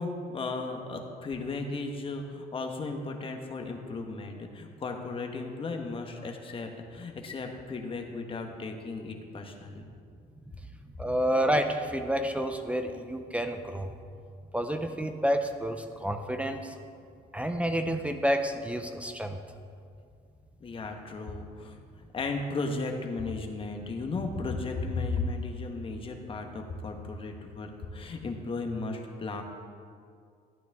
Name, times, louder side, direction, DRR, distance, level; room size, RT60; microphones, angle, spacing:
voice 1, 0.0-9.9 20.6-21.8 22.1-29.4, left 3 dB, 30° left, 3 dB, 1.2 m, -35 dB
voice 2, 11.0-13.9 14.5-16.7 17.3-19.4, equal, 5° right, 6 dB, 0.6 m, -29 dB
12.5 x 9.2 x 3.5 m, 2.3 s
cardioid pair, 110°, 17 cm